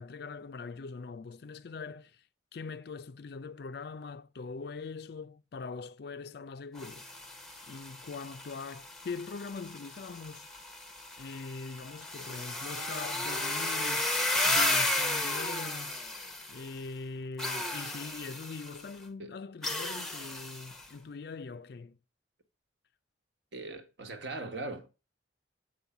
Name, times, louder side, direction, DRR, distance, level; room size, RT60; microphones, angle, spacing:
voice 1, 0.0-2.2 2.5-7.1 7.7-10.5 11.2-14.1 14.4-16.0 16.5-22.0, left 4 dB, 55° left, 0.4 m, -42 dB
sound 1, 6.7-16.8 17.4-18.8 19.6-20.8, left 2 dB, ahead, 0.7 m, -34 dB
voice 2, 23.5-24.9, right 2 dB, 60° right, 1.3 m, -40 dB
7.9 x 5.4 x 5.7 m
head